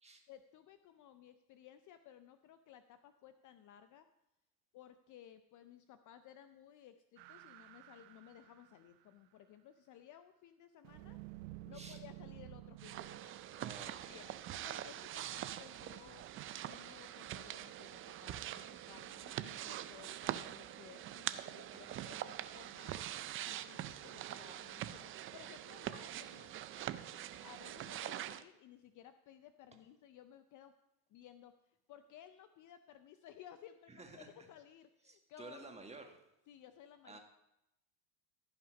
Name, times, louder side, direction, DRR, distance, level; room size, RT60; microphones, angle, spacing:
voice 1, 0.3-4.1 4.7-11.2 11.7-13.5 13.8-14.3 14.6-16.2 16.6-26.6 26.9-30.7 31.1-35.6 36.5-37.2, left 10 dB, 40° left, 10 dB, 0.6 m, -58 dB
sound 1, 7.2-9.2 10.8-13.2, right 17 dB, 80° right, 0.8 m, -52 dB
sound 2, 12.8-28.4, right 12 dB, 30° right, 0.4 m, -44 dB
voice 2, 13.5-14.3 21.7-22.0 33.9-34.5 35.0-36.2 37.0-37.2, right 3 dB, 15° right, 4 dB, 1.6 m, -53 dB
14.5 x 5.9 x 5.1 m, 0.88 s
supercardioid pair, 105°, 50 cm